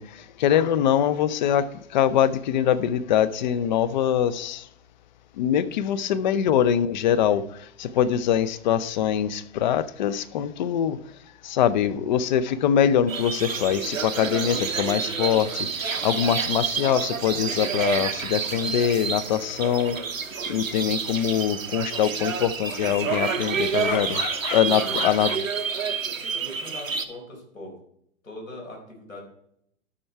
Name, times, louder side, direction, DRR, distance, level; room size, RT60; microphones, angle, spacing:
voice 1, 0.0-4.7 5.4-11.0 11.4-20.0 20.5-25.4, left 9 dB, 35° left, 0.6 m, -23 dB
sound 1, 13.1-27.0, right 6 dB, 80° right, 1.1 m, -29 dB
voice 2, 24.6-25.3 26.4-27.8 28.2-29.2, left 2 dB, 85° left, 4.8 m, -40 dB
12.5 x 6.2 x 4.5 m
figure-of-eight pair, 110°, 39 cm